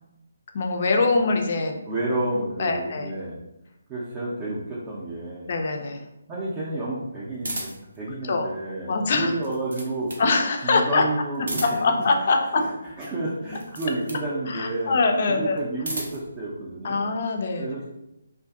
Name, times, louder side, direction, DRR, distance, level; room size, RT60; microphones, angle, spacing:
voice 1, 0.5-1.8 2.6-3.1 5.5-6.0 8.3-8.5 8.9-9.3 10.2-11.0 11.6-12.6 14.5-15.6 16.8-17.7, left 3 dB, 45° left, 3 dB, 0.4 m, -23 dB
voice 2, 1.9-3.4 3.9-5.5 6.3-10.2 10.6-12.3 12.5-12.7 13.0-15.0 15.3-17.0 17.6-17.9, right 2 dB, 20° right, -7 dB, 0.5 m, -30 dB
sound 1, 7.4-8.0 9.2-10.3 11.3-12.0 13.5-14.3 15.5-16.3, right 2 dB, 65° right, 0.6 m, -34 dB
2.5 x 2.4 x 2.3 m, 0.91 s
figure-of-eight pair, 145°, 0 cm